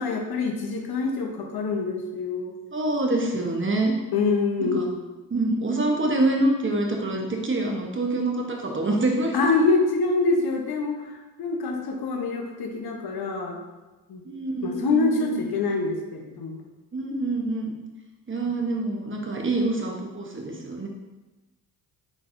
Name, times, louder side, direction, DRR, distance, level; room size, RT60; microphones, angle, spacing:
voice 1, 0.0-2.5 4.1-5.0 9.3-13.6 14.1-14.2 14.6-16.6 18.4-18.5, left 3 dB, 60° left, 2 dB, 0.9 m, -25 dB
voice 2, 2.7-3.9 4.6-4.8 5.3-9.3 14.2-15.4 16.9-17.7 18.3-20.9, right 2 dB, 30° right, 1 dB, 1.0 m, -26 dB
4.8 x 4.0 x 2.6 m, 1.1 s
supercardioid pair, 55°, 43 cm